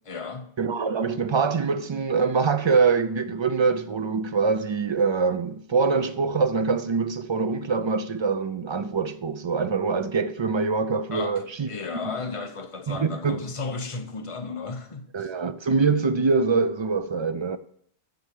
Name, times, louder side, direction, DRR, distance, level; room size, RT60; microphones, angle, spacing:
voice 1, 0.1-0.5 11.1-15.3, left 4 dB, 35° left, 0.9 m, -34 dB
voice 2, 0.6-11.7 12.1-12.2 12.9-13.4 15.1-17.6, right 4 dB, 40° right, 0.4 m, -24 dB
7.7 x 6.5 x 7.5 m
omnidirectional pair, 1.1 m